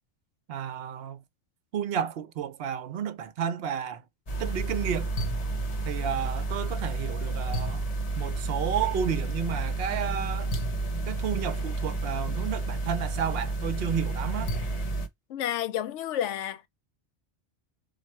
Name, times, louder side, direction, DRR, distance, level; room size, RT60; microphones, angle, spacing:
voice 1, 0.5-1.2 1.7-4.0 4.4-5.1 5.8-7.8 8.2-10.5 11.1-14.5, right 8 dB, 60° right, 0.8 m, -31 dB
sound 1, 4.3-15.1, right 2 dB, 40° left, 0.7 m, -31 dB
voice 2, 15.3-16.6, left 10 dB, 80° left, 0.9 m, -30 dB
4.2 x 2.4 x 4.3 m
omnidirectional pair, 1.2 m